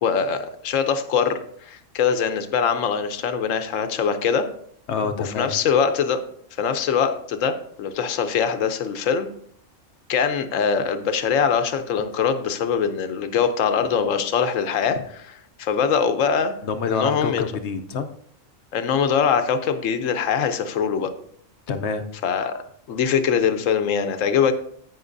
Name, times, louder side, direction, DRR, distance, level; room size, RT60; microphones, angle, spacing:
voice 1, 0.0-4.5 5.2-6.2 6.6-9.3 10.1-16.5 16.9-17.4 18.7-21.1 22.2-22.6 22.9-24.5, left 7 dB, 85° left, 9 dB, 1.1 m, -22 dB
voice 2, 4.9-5.5 16.6-18.1 21.7-22.1, left 5 dB, 65° left, 7 dB, 0.9 m, -26 dB
17.0 x 5.8 x 2.6 m, 0.65 s
omnidirectional pair, 1.3 m